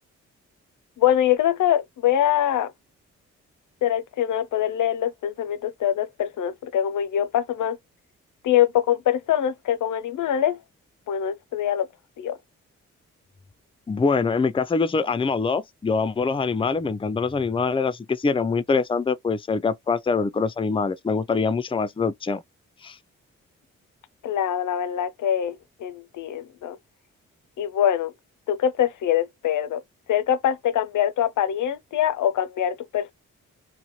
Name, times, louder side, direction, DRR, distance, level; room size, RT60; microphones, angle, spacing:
voice 1, 1.0-2.7 3.8-7.8 8.4-10.6 11.1-11.9 12.2-12.4 24.2-26.8 27.6-28.1 28.5-29.8 30.1-33.1, left 10 dB, 65° left, 0.6 m, -23 dB
voice 2, 13.9-22.4 22.8-23.0, left 4 dB, 15° left, 0.5 m, -24 dB
2.7 x 2.1 x 3.0 m
supercardioid pair, 45°, 34 cm